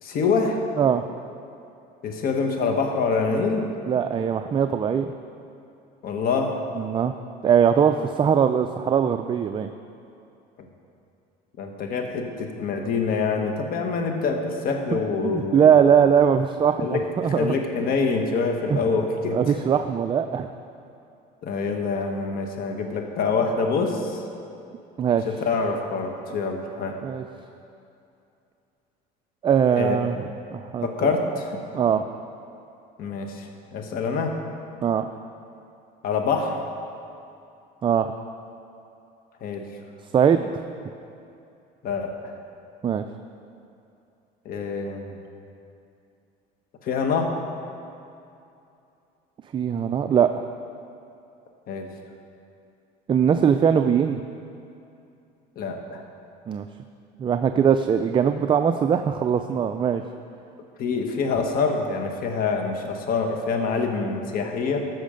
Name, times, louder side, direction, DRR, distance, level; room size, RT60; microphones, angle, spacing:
voice 1, 0.0-0.6 2.0-3.7 6.0-6.6 10.6-10.7 11.6-15.7 16.8-19.6 21.4-24.2 25.3-27.0 29.7-30.0 30.8-31.6 33.0-34.4 36.0-36.6 39.4-39.7 41.8-42.4 44.4-45.2 46.8-47.4 51.7-51.9 55.6-56.0 60.8-64.8, left 4 dB, 55° left, 3 dB, 1.4 m, -26 dB
voice 2, 3.9-5.1 6.8-7.1 7.4-9.7 15.2-17.5 18.7-18.8 19.3-20.5 25.0-25.3 27.0-27.2 29.4-30.2 30.5-31.1 31.7-32.0 34.8-35.1 37.8-38.1 40.1-40.6 42.8-43.0 49.5-50.4 53.1-54.2 56.5-56.7 57.2-60.0, right 8 dB, 25° right, 8 dB, 0.4 m, -21 dB
14.0 x 6.3 x 5.2 m, 2.7 s
cardioid pair, 115°, 18 cm